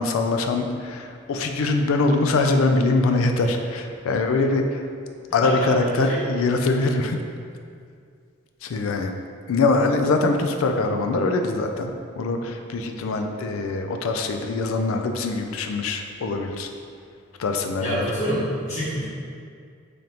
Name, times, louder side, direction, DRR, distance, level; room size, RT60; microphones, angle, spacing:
voice 1, 0.0-4.8 5.3-7.2 8.6-9.1 9.5-16.7 17.4-18.1, left 3 dB, 90° left, 5 dB, 0.4 m, -23 dB
voice 2, 17.8-19.1, equal, 35° left, -11 dB, 1.3 m, -27 dB
3.8 x 3.4 x 2.9 m, 2.3 s
head